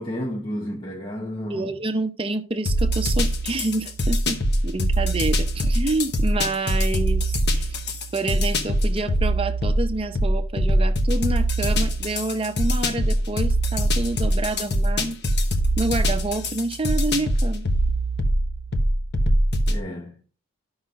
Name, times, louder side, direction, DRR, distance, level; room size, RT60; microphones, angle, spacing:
voice 1, 0.0-1.8 19.7-20.2, equal, 20° left, 0.9 m, -31 dB
voice 2, 1.5-7.8 8.1-15.2 15.8-17.7, right 2 dB, 25° right, 0.7 m, -28 dB
sound 1, 2.7-19.8, equal, 50° left, 1.1 m, -23 dB
13.0 x 5.6 x 2.4 m
head